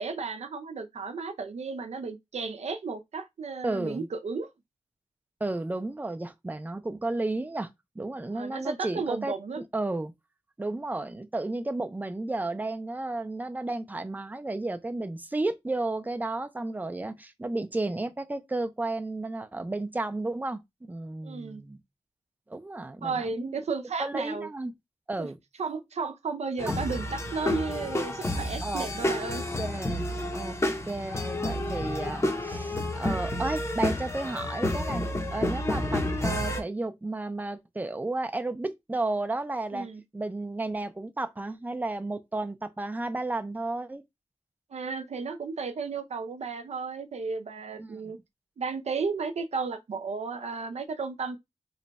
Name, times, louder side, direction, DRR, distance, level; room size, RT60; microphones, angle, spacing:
voice 1, 0.0-4.5 8.3-9.6 21.2-21.6 23.0-24.5 25.2-25.3 25.6-29.4 39.7-40.0 44.7-48.2 48.6-51.4, right 4 dB, 75° right, 0.6 m, -33 dB
voice 2, 3.6-4.1 5.4-7.7 8.0-9.3 9.7-10.1 10.6-21.8 22.5-23.6 24.0-24.7 25.1-25.4 26.6-26.7 28.6-28.9 29.6-30.6 30.8-35.0 35.3-39.9 40.1-44.0 47.8-48.0, right 2 dB, 15° right, 0.4 m, -33 dB
sound 1, 26.6-36.6, left 1 dB, 25° left, 0.7 m, -30 dB
3.1 x 2.2 x 4.0 m
wide cardioid pair, 120°, 11 cm